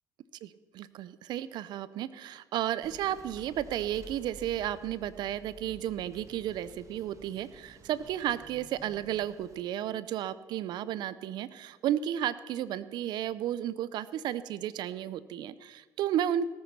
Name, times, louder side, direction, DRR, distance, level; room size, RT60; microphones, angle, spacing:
voice 1, 0.4-16.5, right 11 dB, 75° right, 16 dB, 0.6 m, -33 dB
sound 1, 2.8-9.6, right 3 dB, 45° right, 1.5 m, -52 dB
18.0 x 8.6 x 5.9 m, 1.4 s
cardioid pair, 90°, 8 cm